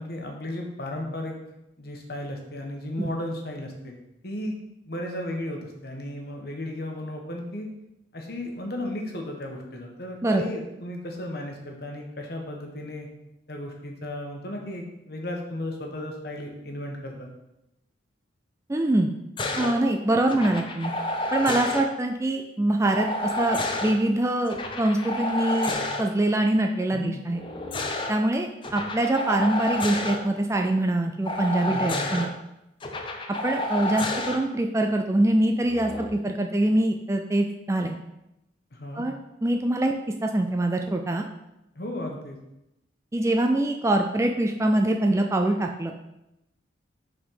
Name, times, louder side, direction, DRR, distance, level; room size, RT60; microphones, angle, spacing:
voice 1, 0.0-1.4 1.8-3.9 4.2-4.6 4.9-7.7 8.1-13.1 13.5-17.3 26.9-27.2 31.7-32.1 38.7-39.0 41.7-42.4, left 1 dB, 55° left, 2 dB, 1.2 m, -34 dB
voice 2, 18.7-19.1 19.6-20.9 21.3-23.1 23.4-25.7 26.0-27.4 28.1-32.3 33.4-38.0 38.9-39.9 40.2-41.2 43.1-45.9, right 1 dB, 15° right, 4 dB, 0.3 m, -24 dB
sound 1, 19.4-19.7 20.3-21.8 22.9-23.9 24.5-26.0 27.3-28.1 28.6-30.2 31.3-32.3 32.8-34.4 35.7-36.1, left 1 dB, 25° left, 0.6 m, -29 dB
5.7 x 4.1 x 5.6 m, 0.90 s
head